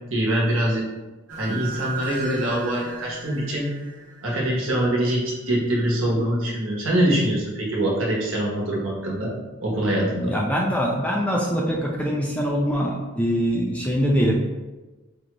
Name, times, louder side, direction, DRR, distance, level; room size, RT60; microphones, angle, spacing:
voice 1, 0.1-0.8 1.4-3.7 4.2-9.3 9.6-10.3, right 1 dB, 75° right, -3 dB, 1.1 m, -24 dB
sound 1, 1.3-5.3, right 3 dB, 55° right, 1.5 m, -37 dB
voice 2, 9.8-14.3, equal, 5° left, -2 dB, 0.4 m, -23 dB
5.1 x 2.3 x 3.0 m, 1.2 s
head